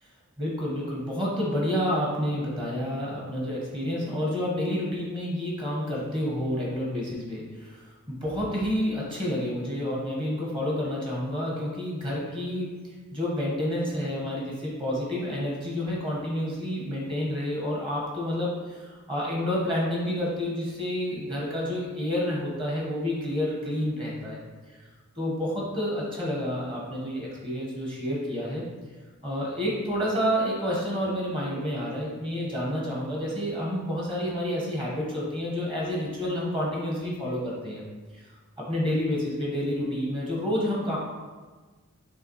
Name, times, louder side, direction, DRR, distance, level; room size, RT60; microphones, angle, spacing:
voice 1, 0.4-7.8 8.1-12.7 13.1-24.4 24.7-24.8 25.1-28.6 29.2-37.9 38.1-38.2 38.6-41.0, equal, 25° right, -4 dB, 1.5 m, -29 dB
6.9 x 3.3 x 4.8 m, 1.4 s
head